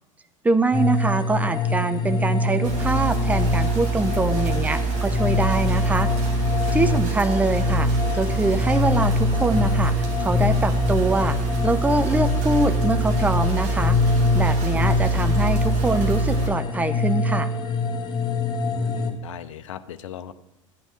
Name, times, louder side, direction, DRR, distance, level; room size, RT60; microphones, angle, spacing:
voice 1, 0.4-6.1 6.7-7.9 8.1-11.4 11.6-14.0 14.3-17.5, right 3 dB, 10° right, 11 dB, 0.6 m, -24 dB
sound 1, 0.7-19.1, left 3 dB, 25° left, 1.4 m, -24 dB
sound 2, 2.6-16.5, right 4 dB, 45° right, 2.3 m, -26 dB
voice 2, 6.6-7.0 14.7-15.0 18.6-20.3, left 10 dB, 65° left, 12 dB, 0.6 m, -38 dB
12.0 x 8.8 x 3.4 m, 0.88 s
figure-of-eight pair, 80°, 17 cm